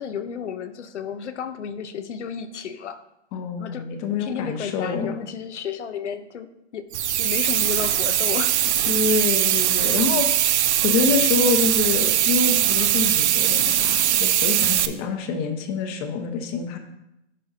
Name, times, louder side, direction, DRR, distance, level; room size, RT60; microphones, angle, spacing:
voice 1, 0.0-3.0 3.6-6.9 7.2-8.7, left 7 dB, 85° left, 11 dB, 0.8 m, -32 dB
voice 2, 3.3-5.2 8.8-10.3 10.8-16.8, left 5 dB, 35° left, 6 dB, 1.0 m, -26 dB
sound 1, 6.9-14.9, right 11 dB, 75° right, 0.6 m, -21 dB
11.0 x 5.0 x 2.8 m, 0.86 s
hypercardioid pair, 140°, 34 cm